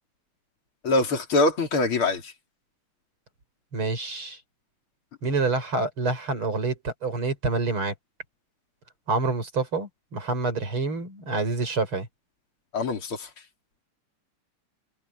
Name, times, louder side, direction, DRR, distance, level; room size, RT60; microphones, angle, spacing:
voice 1, 0.8-2.3 12.7-13.3, left 2 dB, 75° left, 4.0 m, -24 dB
voice 2, 3.7-4.4 5.2-7.9 9.1-12.1, right 3 dB, 75° right, 6.3 m, -27 dB
omnidirectional pair, 2.4 m